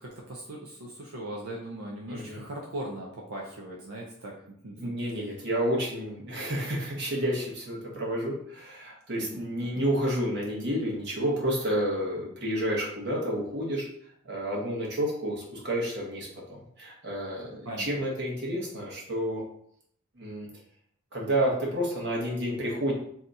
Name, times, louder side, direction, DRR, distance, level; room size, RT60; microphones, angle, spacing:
voice 1, 0.0-5.2 9.1-9.8 17.6-17.9, right 1 dB, 90° right, -2 dB, 0.6 m, -40 dB
voice 2, 2.1-2.4 4.8-13.9 14.2-19.4 20.2-20.5 21.1-22.9, equal, 60° right, -3 dB, 1.1 m, -30 dB
2.7 x 2.4 x 3.9 m, 0.67 s
head